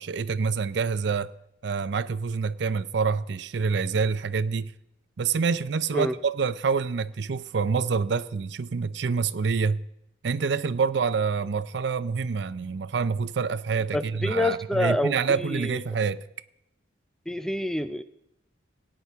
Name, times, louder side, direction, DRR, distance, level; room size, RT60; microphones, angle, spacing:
voice 1, 0.0-1.3 1.6-4.7 5.2-9.8 10.2-16.2, right 5 dB, 65° right, 0.5 m, -27 dB
voice 2, 13.9-15.8 17.3-18.0, left 1 dB, 5° left, 0.4 m, -27 dB
17.5 x 9.8 x 3.5 m
head